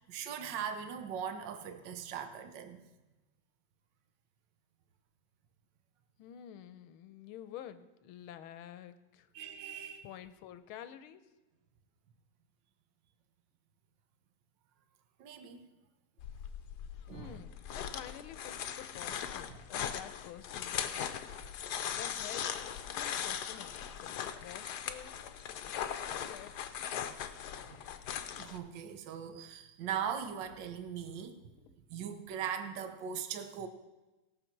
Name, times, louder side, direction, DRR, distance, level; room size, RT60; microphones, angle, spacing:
voice 1, 0.1-2.8 9.3-10.1 15.2-15.6 17.1-17.4 28.4-31.5 31.9-33.7, right 8 dB, 65° right, 8 dB, 1.5 m, -40 dB
voice 2, 6.2-9.3 10.0-11.3 17.1-21.0 21.9-25.1 25.7-27.4 31.6-31.7, left 10 dB, 85° left, 12 dB, 1.6 m, -50 dB
sound 1, 16.2-28.6, left 9 dB, 65° left, 1.1 m, -39 dB
17.0 x 6.6 x 5.8 m, 1.1 s
omnidirectional pair, 2.3 m